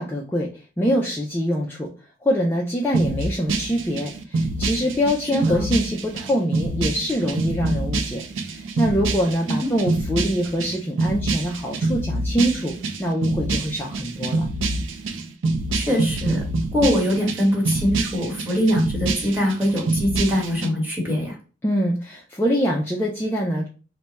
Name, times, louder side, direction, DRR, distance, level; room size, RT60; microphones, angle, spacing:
voice 1, 0.0-1.9 2.2-14.5 21.6-23.7, equal, 10° left, -3 dB, 0.4 m, -24 dB
sound 1, 2.9-20.7, right 2 dB, 80° right, 0.5 m, -26 dB
voice 2, 5.3-5.6 9.6-9.7 15.7-16.4 16.7-21.4, equal, 10° right, -3 dB, 1.2 m, -22 dB
3.3 x 2.1 x 3.9 m, 0.37 s
head